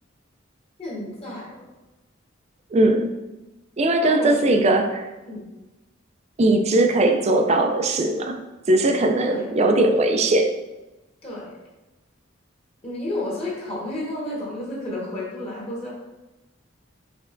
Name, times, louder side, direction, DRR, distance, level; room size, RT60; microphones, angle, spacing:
voice 1, 0.8-1.7 4.0-4.6 5.2-5.5 9.2-9.5 11.2-11.6 12.8-15.9, left 1 dB, 30° left, -5 dB, 1.3 m, -31 dB
voice 2, 2.7-3.1 3.8-5.1 6.4-8.4 8.7-10.5, right 2 dB, 35° right, 5 dB, 0.4 m, -19 dB
5.1 x 3.2 x 2.5 m, 1.0 s
head